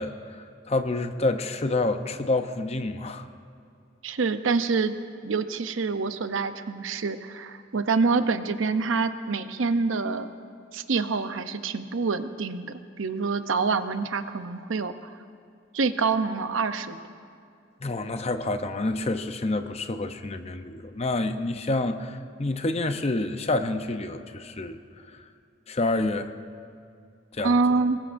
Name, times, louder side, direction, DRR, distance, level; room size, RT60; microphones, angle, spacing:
voice 1, 0.0-3.3 17.8-24.8 25.1-25.2 25.7-26.3 27.3-27.5, left 2 dB, 35° left, 8 dB, 0.7 m, -28 dB
voice 2, 4.0-5.0 5.2-10.3 10.7-15.1 15.7-17.0 27.4-28.0, right 4 dB, 90° right, 10 dB, 0.7 m, -26 dB
24.5 x 20.5 x 2.6 m, 2.4 s
head